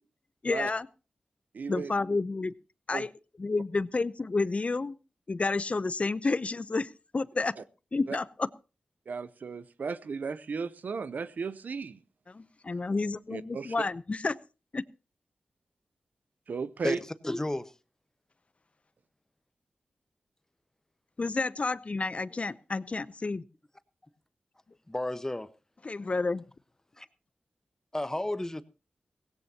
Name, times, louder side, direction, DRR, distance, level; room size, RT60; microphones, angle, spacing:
voice 1, 0.4-0.9 1.7-2.5 2.9-3.1 3.4-5.0 5.3-7.6 7.9-8.5 12.3-14.4 14.7-14.8 21.2-23.4 25.8-26.4, left 3 dB, 45° left, 0.7 m, -30 dB
voice 2, 1.5-1.9 2.9-3.1 7.6-7.7 8.1-8.2 9.1-12.0 13.3-13.7 16.5-17.0, right 5 dB, 75° right, 0.7 m, -35 dB
voice 3, 16.8-17.7 24.9-25.5 27.0-27.1 27.9-28.6, left 1 dB, 20° left, 1.2 m, -32 dB
17.0 x 16.5 x 2.9 m
cardioid pair, 45°, 3 cm